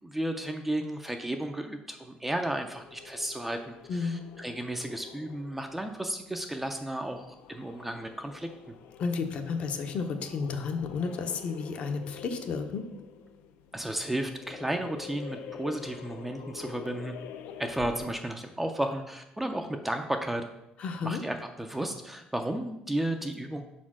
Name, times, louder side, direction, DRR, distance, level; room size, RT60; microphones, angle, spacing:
voice 1, 0.0-8.8 13.7-17.1 17.6-20.5 21.0-23.6, right 1 dB, 5° right, 5 dB, 0.4 m, -33 dB
sound 1, 2.7-18.4, left 7 dB, 90° left, 0.5 m, -47 dB
voice 2, 3.9-4.2 9.0-12.8 20.8-21.2, left 5 dB, 45° left, 7 dB, 0.6 m, -32 dB
4.9 x 4.3 x 5.9 m, 0.88 s
cardioid pair, 165°, 3 cm